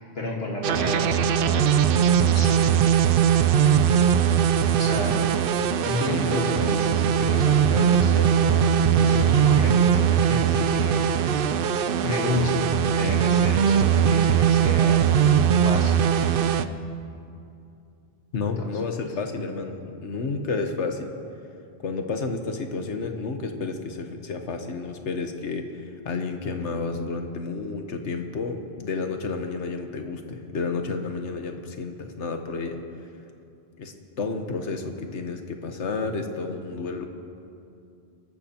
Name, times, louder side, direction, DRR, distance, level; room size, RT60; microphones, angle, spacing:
voice 1, 0.2-2.7 4.8-5.3 5.8-11.1 12.0-15.1 15.6-16.1 18.6-18.7, left 2 dB, 60° left, -1 dB, 1.9 m, -31 dB
sound 1, 0.6-16.6, right 8 dB, 60° right, 0.6 m, -20 dB
voice 2, 18.3-21.1 21.8-32.8 33.8-37.1, left 4 dB, 80° left, 5 dB, 1.4 m, -31 dB
24.0 x 13.5 x 2.9 m, 2.6 s
omnidirectional pair, 1.2 m